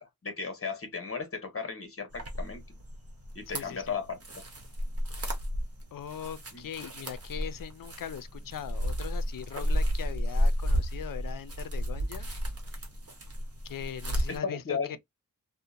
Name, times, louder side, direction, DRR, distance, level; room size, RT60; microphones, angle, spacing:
voice 1, 0.0-2.6 3.3-4.2 6.5-6.7 14.3-15.0, left 5 dB, 40° left, 1.0 m, -35 dB
sound 1, 2.1-14.4, equal, 45° right, 0.9 m, -32 dB
voice 2, 3.5-3.9 5.9-12.3 13.6-15.0, left 9 dB, 75° left, 0.5 m, -40 dB
2.8 x 2.1 x 2.3 m
wide cardioid pair, 95°, 33 cm